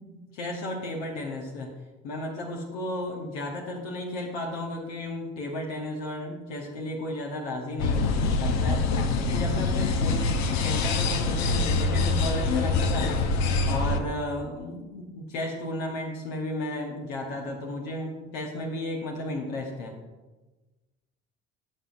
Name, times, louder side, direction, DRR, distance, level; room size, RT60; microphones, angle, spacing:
voice 1, 0.0-1.7 2.0-8.9 9.2-13.2 13.6-20.0, left 1 dB, 80° left, 1 dB, 1.2 m, -34 dB
sound 1, 7.8-14.0, left 3 dB, 60° left, 0.8 m, -25 dB
14.0 x 5.5 x 2.6 m, 1.2 s
hypercardioid pair, 60°, 30 cm